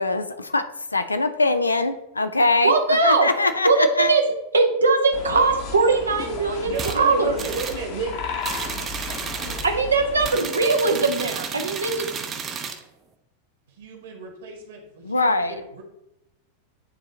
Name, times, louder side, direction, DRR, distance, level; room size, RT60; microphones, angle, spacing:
voice 1, 0.0-2.7 3.0-4.1 15.0-15.6, left 3 dB, 80° left, 9 dB, 0.4 m, -22 dB
voice 2, 2.6-3.3 3.6-4.2 4.5-7.3 9.6-12.1, right 3 dB, 75° right, 4 dB, 0.7 m, -20 dB
sound 1, 5.1-10.3, left 4 dB, 50° left, 1.1 m, -34 dB
voice 3, 6.6-8.1 13.7-15.8, right 4 dB, 60° right, 2 dB, 1.6 m, -33 dB
sound 2, 6.7-7.0 7.4-7.8 8.4-9.7 10.2-12.8, right 6 dB, 25° right, 0.6 m, -32 dB
9.5 x 3.6 x 2.8 m, 0.84 s
figure-of-eight pair, 90°, 0 cm